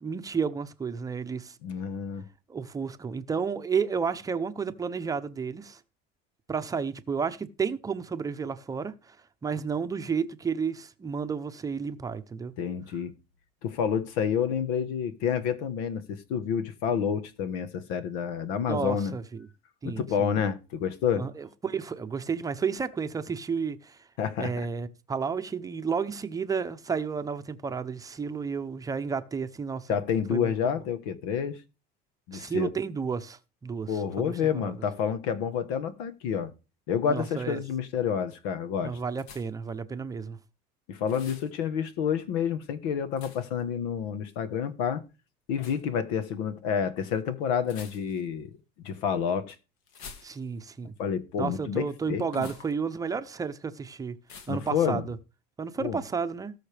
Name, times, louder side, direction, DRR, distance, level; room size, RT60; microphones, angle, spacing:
voice 1, 0.0-1.6 2.5-5.8 6.5-9.2 9.4-12.5 18.7-19.5 19.8-20.3 21.2-24.0 24.4-29.9 30.3-30.5 32.3-34.7 37.1-37.6 38.8-40.4 50.2-50.9 51.4-54.2 54.5-55.2 55.6-56.5, right 5 dB, 15° right, 0.7 m, -32 dB
voice 2, 1.6-2.2 12.6-13.1 13.6-19.1 19.8-21.3 24.2-24.5 29.9-31.6 32.3-32.7 33.9-36.5 36.9-39.0 40.9-45.0 45.5-48.5 48.8-49.6 51.0-52.5 54.5-55.0 55.8-56.0, left 7 dB, 90° left, 1.3 m, -29 dB
sound 1, 39.2-39.7 41.1-41.5 43.2-43.6 45.5-45.8 47.6-48.3 49.9-50.7 52.3-52.7 54.3-54.7, left 5 dB, 75° left, 1.9 m, -48 dB
18.5 x 6.4 x 3.4 m
cardioid pair, 150°, 21 cm